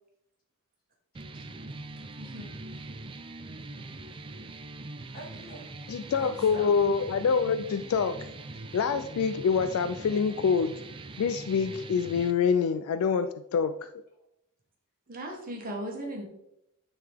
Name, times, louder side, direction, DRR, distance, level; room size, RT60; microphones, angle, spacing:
voice 1, 1.1-2.2 5.1-5.7 6.1-6.7, equal, 40° left, -4 dB, 2.6 m, -47 dB
sound 1, 1.1-12.3, right 2 dB, 25° right, 0.4 m, -42 dB
voice 2, 2.2-2.6 15.1-16.2, right 1 dB, 40° right, 1 dB, 1.3 m, -38 dB
voice 3, 5.9-8.3 8.7-10.7 11.2-13.8, left 6 dB, 65° left, 11 dB, 0.3 m, -26 dB
9.4 x 3.9 x 3.5 m, 0.83 s
head